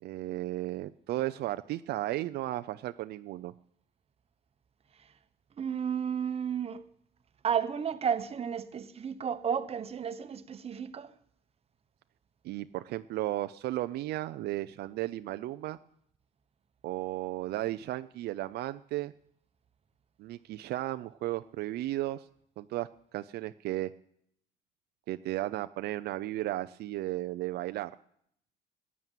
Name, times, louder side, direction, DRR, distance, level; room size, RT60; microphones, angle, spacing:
voice 1, 0.0-3.5 12.4-15.8 16.8-19.1 20.2-22.2 22.6-23.9 25.1-27.9, right 15 dB, 75° right, 0.5 m, -34 dB
voice 2, 5.6-6.8 7.4-11.1, right 7 dB, 35° right, 1.1 m, -32 dB
14.5 x 9.5 x 9.2 m
cardioid pair, 110°, 17 cm